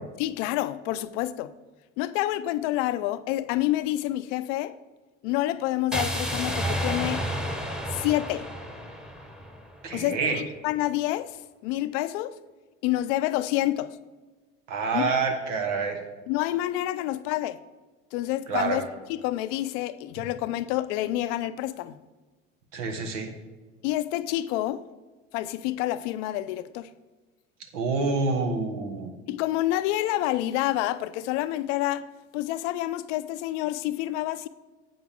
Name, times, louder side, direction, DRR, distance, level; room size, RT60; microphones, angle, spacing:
voice 1, 0.2-1.5 2.0-4.7 5.2-7.2 7.9-8.5 9.9-11.4 11.6-12.4 12.8-14.0 14.9-15.2 16.3-17.6 18.1-18.8 19.1-22.0 23.8-24.8 25.3-26.9 29.3-32.1 32.3-34.5, left 15 dB, 70° left, 0.6 m, -28 dB
sound 1, 5.9-10.0, equal, ahead, 1.1 m, -31 dB
voice 2, 9.8-10.4 14.7-16.0 18.5-18.8 22.7-23.3 27.7-29.1, right 4 dB, 80° right, 1.4 m, -27 dB
9.4 x 7.9 x 3.6 m
hypercardioid pair, 70°, 37 cm